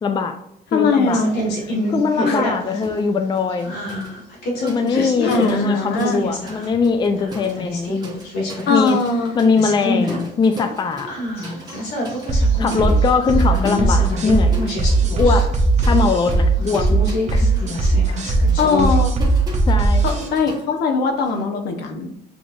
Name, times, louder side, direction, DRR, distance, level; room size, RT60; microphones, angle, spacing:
voice 1, 0.0-0.4 0.7-1.2 1.9-3.7 4.6-8.0 8.7-9.0 9.3-11.2 12.6-14.6 15.2-15.5 15.8-16.9 19.7-20.0, left 4 dB, 25° left, 6 dB, 0.4 m, -21 dB
voice 2, 0.7-1.3 2.3-2.4 4.9-6.2 8.7-9.4 18.6-19.2 20.0-22.1, left 4 dB, 70° left, 4 dB, 0.9 m, -20 dB
sound 1, 1.1-2.9 3.3-6.8 7.1-9.3 9.6-10.2 10.5-10.6 11.1-16.1 16.6-19.0, left 1 dB, 90° left, 1.6 m, -27 dB
sound 2, 2.8-3.1 3.4-6.2 6.5-21.4, right 1 dB, 25° right, 1.3 m, -38 dB
sound 3, 12.3-20.3, right 3 dB, 45° right, 0.9 m, -18 dB
7.1 x 3.0 x 2.5 m, 0.79 s
cardioid pair, 110°, 17 cm